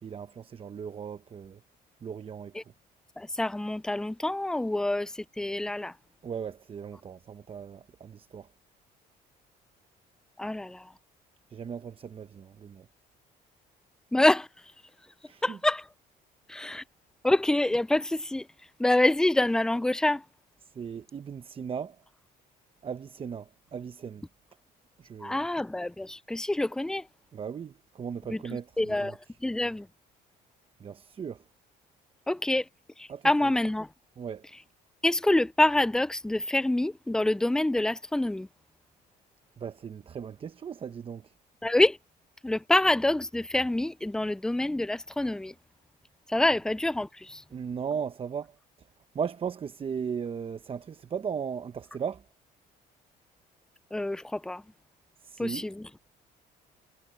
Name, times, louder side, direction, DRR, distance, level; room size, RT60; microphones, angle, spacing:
voice 1, 0.0-1.6 2.0-2.5 6.2-8.5 11.5-12.9 15.3-15.6 20.7-22.0 22.8-24.2 25.0-25.4 27.3-29.2 30.8-31.4 33.1-33.5 34.2-34.5 39.6-41.3 47.5-48.5 49.1-52.2 55.2-55.7, right 7 dB, 35° right, 0.8 m, -37 dB
voice 2, 3.2-5.9 10.4-10.9 14.1-14.5 15.4-15.9 16.5-16.8 17.2-18.5 18.8-20.2 25.2-27.0 28.3-29.9 32.3-32.6 33.0-33.9 35.0-38.5 41.6-42.0 42.4-45.5 46.3-47.4 53.9-54.6 55.4-55.9, left 1 dB, 5° left, 0.3 m, -26 dB
cardioid pair, 110°, 17 cm